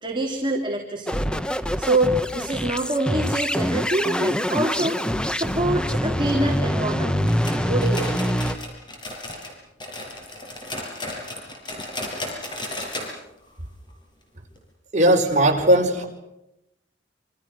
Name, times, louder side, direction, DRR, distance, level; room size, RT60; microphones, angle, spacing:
voice 1, 0.0-1.3 1.8-5.0 5.3-7.4 7.7-8.3, right 1 dB, 25° right, 2 dB, 2.7 m, -25 dB
sound 1, 1.1-8.5, equal, 5° left, 1.0 m, -25 dB
sound 2, 7.3-9.5 9.8-13.1 13.4-13.5 13.9-14.0 14.6-14.7, left 1 dB, 25° left, 7.1 m, -34 dB
voice 2, 14.9-16.0, right 1 dB, 40° right, 2 dB, 5.5 m, -18 dB
28.0 x 27.0 x 6.4 m, 0.87 s
head